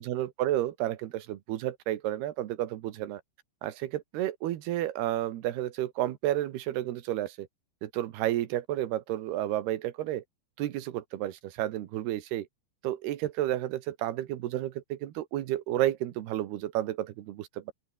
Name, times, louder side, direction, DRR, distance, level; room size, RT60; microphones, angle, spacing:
voice 1, 0.0-3.2 3.6-7.5 7.8-10.2 10.6-12.5 12.8-17.7, right 13 dB, 70° right, 3.2 m, -31 dB
open air
omnidirectional pair, 5.0 m